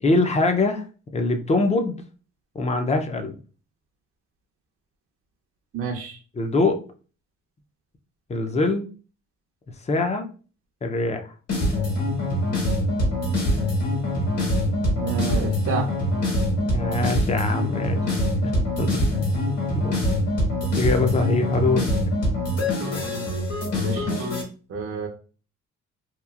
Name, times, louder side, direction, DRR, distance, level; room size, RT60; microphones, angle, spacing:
voice 1, 0.0-0.8 1.1-2.0 2.5-3.3 6.4-6.8 8.3-8.9 9.9-10.3 10.8-11.3 16.7-18.0 18.8-19.4 19.8-20.0 20.8-21.9, left 2 dB, 20° left, 6 dB, 0.5 m, -23 dB
voice 2, 5.7-6.2 15.0-15.9 23.8-24.3 24.7-25.1, right 6 dB, 45° right, 0 dB, 0.6 m, -29 dB
sound 1, 11.5-24.4, left 1 dB, 55° left, 1.5 m, -24 dB
2.9 x 2.4 x 2.4 m, 0.37 s
cardioid pair, 90°, 30 cm